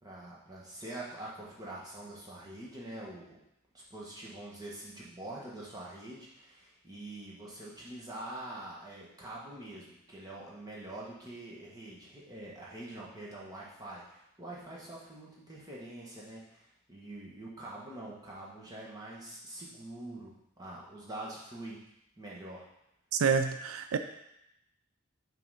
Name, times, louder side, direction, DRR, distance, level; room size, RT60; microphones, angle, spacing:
voice 1, 0.0-3.4 3.7-21.8 22.2-22.7, right 1 dB, 20° right, -6 dB, 1.4 m, -45 dB
voice 2, 23.1-24.0, right 6 dB, 90° right, 8 dB, 0.4 m, -28 dB
5.6 x 3.9 x 5.6 m, 0.82 s
head